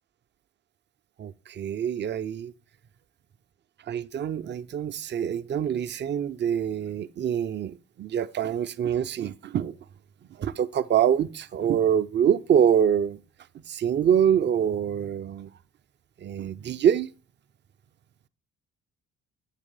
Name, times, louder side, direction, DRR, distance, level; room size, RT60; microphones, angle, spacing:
voice 1, 1.2-2.5 3.9-9.8 10.4-13.2 13.5-15.5 16.2-17.1, right 9 dB, 25° right, 0.5 m, -25 dB
8.4 x 4.1 x 5.3 m
figure-of-eight pair, 45°, 41 cm